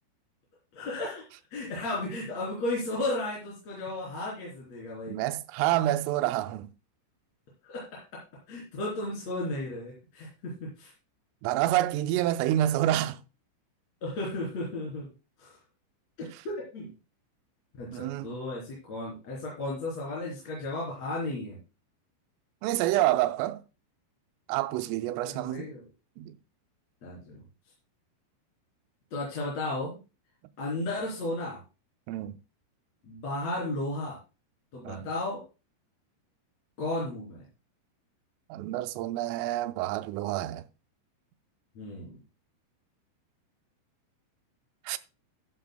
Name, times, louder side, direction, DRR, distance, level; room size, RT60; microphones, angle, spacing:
voice 1, 0.7-1.2 1.5-5.2 7.6-8.2 8.5-10.9 14.0-15.1 15.4-15.6 16.4-16.9 17.8-21.6 25.3-25.8 27.0-27.4 29.1-30.0 30.6-31.6 33.0-34.2 34.7-35.4 36.8-37.4 41.8-42.2, left 2 dB, 35° left, 4.1 m, -34 dB
voice 2, 5.1-6.7 11.4-13.2 17.9-18.4 22.6-23.6 24.5-25.7 26.2-26.4 32.1-32.3 34.9-35.1 38.5-40.6 44.9-45.0, right 14 dB, 85° right, 3.3 m, -28 dB
13.5 x 11.5 x 2.2 m
omnidirectional pair, 5.8 m